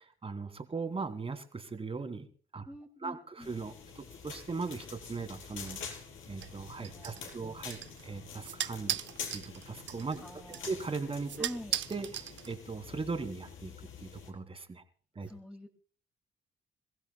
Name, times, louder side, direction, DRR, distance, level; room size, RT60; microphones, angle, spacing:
voice 1, 0.0-2.3 2.5-2.6 3.0-6.0 6.3-9.0 9.3-10.2 10.7-11.5 11.7-14.8 15.1-15.3, right 4 dB, 30° right, 7 dB, 2.5 m, -39 dB
voice 2, 2.7-3.5 6.9-7.7 10.2-10.7 11.4-11.8 15.2-15.7, equal, 5° left, 0 dB, 2.2 m, -46 dB
sound 1, 3.4-14.3, left 6 dB, 80° left, 4.3 m, -47 dB
sound 2, 6.4-12.9, right 10 dB, 70° right, 0.8 m, -40 dB
28.0 x 15.5 x 2.3 m, 0.43 s
cardioid pair, 90°, 20 cm